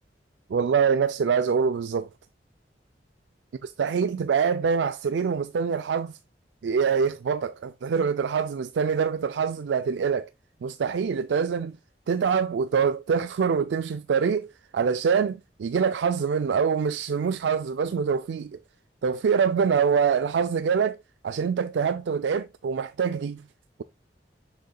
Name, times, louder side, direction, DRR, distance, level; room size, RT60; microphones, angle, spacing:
voice 1, 0.5-2.1 3.6-6.2 6.6-10.3 10.6-11.8 12.1-18.6 19.0-21.0 21.2-23.4, right 6 dB, 85° right, 0.4 m, -25 dB
6.6 x 6.5 x 2.2 m
head